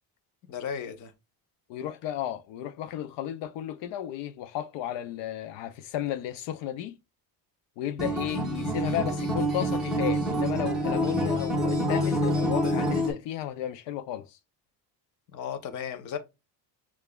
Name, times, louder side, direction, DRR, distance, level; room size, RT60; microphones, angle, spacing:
voice 1, 0.5-1.1 15.3-16.2, left 8 dB, 45° left, 0.7 m, -35 dB
voice 2, 1.7-7.0 7.8-14.4, left 11 dB, 80° left, 0.6 m, -33 dB
Acoustic guitar, 8.0-13.1, equal, ahead, 0.9 m, -27 dB
6.6 x 2.4 x 2.3 m
cardioid pair, 175°, 43 cm